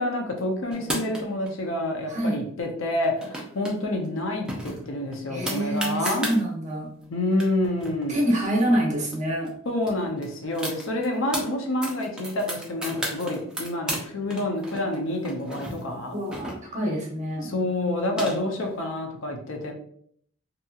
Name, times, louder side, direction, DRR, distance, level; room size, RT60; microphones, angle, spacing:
voice 1, 0.0-6.3 7.1-8.1 9.7-16.2 17.4-19.7, left 1 dB, 65° left, 2 dB, 0.5 m, -28 dB
sound 1, 0.7-1.5 3.0-3.7 4.0-4.1 4.5-6.4 7.0-7.1 7.3-9.2 9.5-9.6 9.8-11.4 11.8-14.0 14.3-16.9 17.7-18.7, right 1 dB, 5° right, 0.4 m, -34 dB
voice 2, 2.1-2.4 5.3-6.9 8.1-9.5 16.1-17.5, right 1 dB, 35° right, -2 dB, 0.7 m, -26 dB
2.7 x 2.7 x 2.3 m, 0.64 s
head